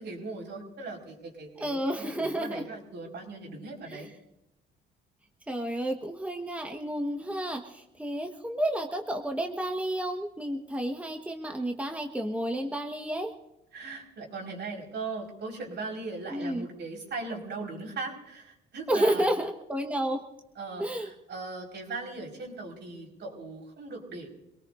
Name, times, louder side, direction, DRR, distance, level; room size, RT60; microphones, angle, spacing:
voice 1, 0.0-4.1 13.7-19.3 20.6-24.3, right 3 dB, 60° right, 0 dB, 4.7 m, -39 dB
voice 2, 1.6-2.6 3.9-4.1 5.5-13.3 16.3-16.7 18.9-20.2 20.8-21.1, right 1 dB, 5° right, 3 dB, 1.3 m, -31 dB
26.5 x 18.5 x 2.6 m, 0.88 s
cardioid pair, 90°, 20 cm